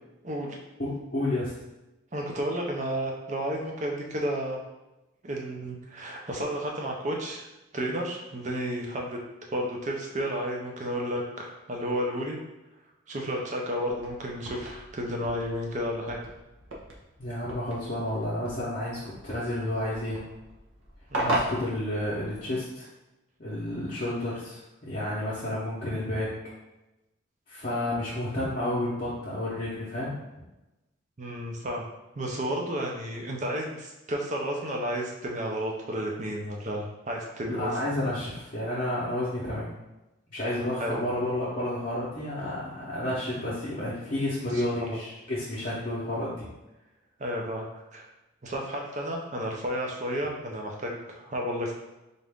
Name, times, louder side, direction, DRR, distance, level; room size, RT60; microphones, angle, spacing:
voice 1, 0.2-0.6 2.1-4.6 5.2-7.5 7.7-9.2 9.5-12.4 13.1-16.2 21.1-21.3 31.2-31.8 32.2-37.7 40.8-41.0 44.5-45.0 47.2-48.0 48.4-51.7, equal, 35° right, 0 dB, 0.6 m, -32 dB
voice 2, 0.8-1.5 17.2-20.2 21.2-22.9 23.4-26.3 27.5-30.1 37.5-39.7 40.3-46.5, left 1 dB, 40° left, -9 dB, 0.7 m, -31 dB
sound 1, 13.9-22.6, right 1 dB, 75° right, 0.8 m, -37 dB
4.0 x 2.5 x 3.5 m, 1.0 s
head